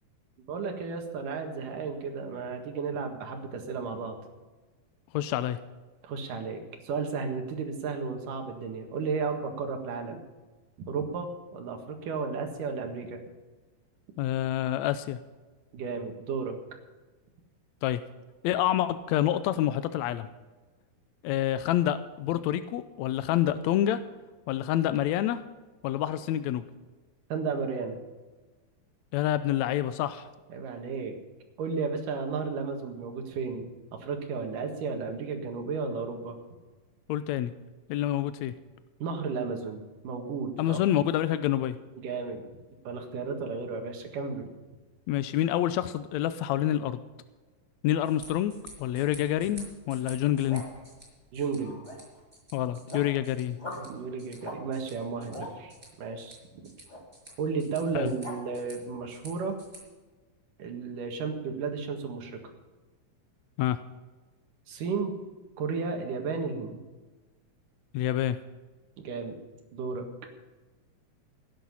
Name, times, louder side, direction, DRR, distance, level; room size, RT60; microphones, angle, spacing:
voice 1, 0.5-4.2 6.0-10.2 10.9-13.2 15.7-16.6 27.3-28.0 30.5-31.1 31.6-36.4 39.0-40.8 41.9-42.4 42.8-44.4 51.3-51.8 53.8-55.7 56.0-56.4 57.4-59.6 60.6-62.4 64.7-65.1 65.6-66.8 69.0-69.4 69.7-70.1, right 5 dB, 75° right, 4 dB, 3.3 m, -33 dB
voice 2, 5.1-5.6 14.2-15.2 17.8-18.0 18.4-20.3 21.2-24.0 24.5-25.4 25.8-26.6 29.1-30.3 37.1-37.5 37.9-38.5 40.6-41.8 45.1-47.0 47.8-50.6 52.5-53.6 57.9-58.1 63.6-63.8 67.9-68.4, left 12 dB, 85° left, 12 dB, 1.6 m, -27 dB
sound 1, 48.0-59.8, right 1 dB, 15° right, 5.6 m, -52 dB
sound 2, 50.2-50.8 51.5-52.2 52.6-53.1 53.6-53.9 54.4-54.6 55.0-55.5 56.9-57.0 57.9-58.4, left 1 dB, 15° left, 3.1 m, -42 dB
16.5 x 10.5 x 5.6 m, 1.3 s
omnidirectional pair, 3.8 m